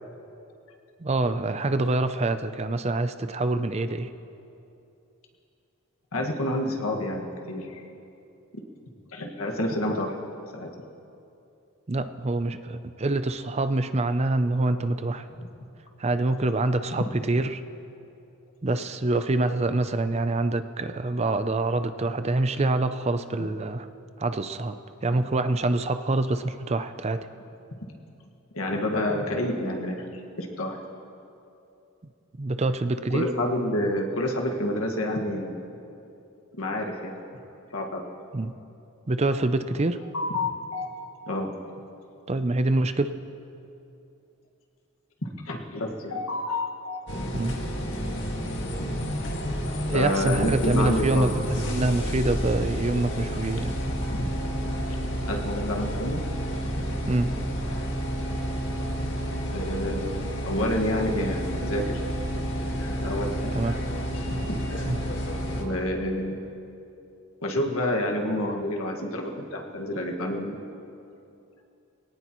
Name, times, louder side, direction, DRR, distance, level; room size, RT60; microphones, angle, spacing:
voice 1, 1.0-4.1 11.9-15.3 16.0-17.6 18.6-23.9 24.2-24.8 25.0-27.2 32.4-33.3 38.3-38.5 39.1-40.0 42.3-43.1 47.3-47.6 49.9-53.8 57.1-57.3 63.5-63.8 64.9-65.0, right 2 dB, 30° right, 10 dB, 0.5 m, -26 dB
voice 2, 6.1-7.8 9.1-10.1 10.5-10.7 15.4-15.5 16.9-17.0 23.4-23.5 28.5-30.8 33.1-35.6 36.5-37.2 37.7-38.0 39.8-40.9 41.3-41.5 45.2-47.0 47.3-47.4 49.5-49.6 49.9-51.4 54.1-54.2 55.2-56.2 59.0-59.1 59.5-62.0 63.0-63.6 64.2-64.6 65.6-66.4 67.4-70.6, left 1 dB, 85° left, 1 dB, 1.8 m, -29 dB
sound 1, 47.1-65.6, equal, 60° left, 1.9 m, -30 dB
22.0 x 17.5 x 3.1 m, 2.7 s
head